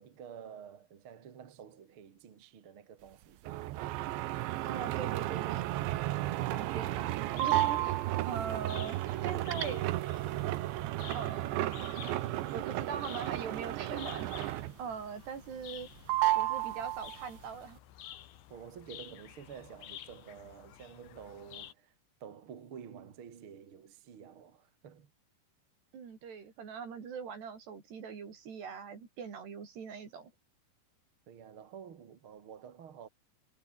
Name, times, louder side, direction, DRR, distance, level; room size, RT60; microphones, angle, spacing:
voice 1, 0.0-3.7 18.5-21.9 22.2-25.1 31.3-33.1, right 7 dB, 45° right, 2.0 m, -50 dB
sound 1, 3.5-14.9 15.3-15.8 16.1-17.4, right 16 dB, 85° right, 3.5 m, -33 dB
voice 2, 4.6-5.7 6.5-8.0 8.3-10.0 11.1-11.8 12.5-15.9 16.4-17.8 25.9-30.3, right 6 dB, 65° right, 6.5 m, -42 dB
sound 2, 7.2-21.7, left 12 dB, 80° left, 4.1 m, -51 dB
omnidirectional pair, 5.1 m